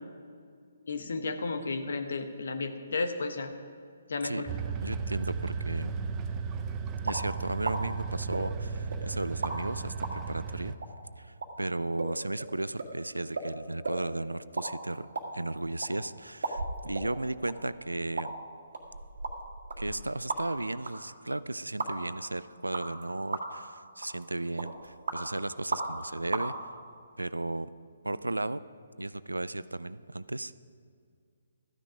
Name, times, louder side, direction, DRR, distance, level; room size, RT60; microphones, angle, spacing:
voice 1, 0.9-3.5 4.1-4.5, left 3 dB, 60° left, 8 dB, 1.1 m, -33 dB
sound 1, 4.5-10.7, right 5 dB, 20° right, 0.7 m, -35 dB
voice 2, 4.8-6.0 7.0-10.7 11.2-18.4 19.8-26.5 27.2-27.7 28.0-28.6 29.0-30.5, right 2 dB, 85° right, 17 dB, 0.4 m, -35 dB
sound 2, 7.1-7.2 7.7-7.8 8.3-9.0 9.4-9.5 10.0-10.1 10.8-10.9 11.4-11.5 12.0-12.1 12.4-12.5 12.8-12.9 13.4-13.5 13.8-14.0 14.4-14.7 14.9-15.9 16.4-17.1 17.5-17.6 18.2-18.3 18.7-20.6 20.9-21.0 21.8-21.9 22.7-23.0 23.3-23.6 24.0-24.2 24.6-25.2 25.7-26.0 26.3-26.4, right 3 dB, 60° right, 1.8 m, -34 dB
14.0 x 10.0 x 5.0 m, 2.2 s
figure-of-eight pair, 135°, 0 cm